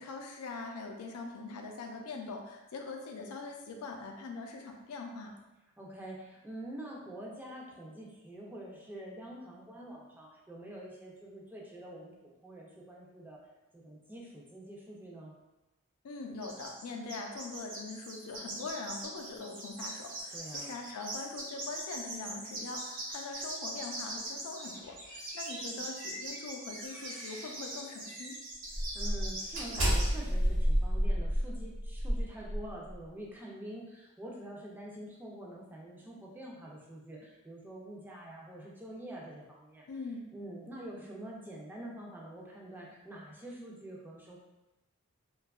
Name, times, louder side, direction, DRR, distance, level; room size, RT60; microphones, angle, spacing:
voice 1, 0.0-5.4 16.0-28.4 39.9-40.3, left 3 dB, 90° left, 2 dB, 0.4 m, -42 dB
voice 2, 5.8-13.4 13.7-15.3 20.3-20.8 28.8-39.9 40.3-44.4, right 1 dB, 10° right, -3 dB, 0.3 m, -46 dB
sound 1, 16.4-16.8 17.1-30.1, right 2 dB, 40° right, 0.6 m, -42 dB
sound 2, 24.6-27.6 28.1-28.3 28.7-33.0, equal, 60° right, 1.0 m, -32 dB
2.7 x 2.3 x 2.3 m, 1.0 s
head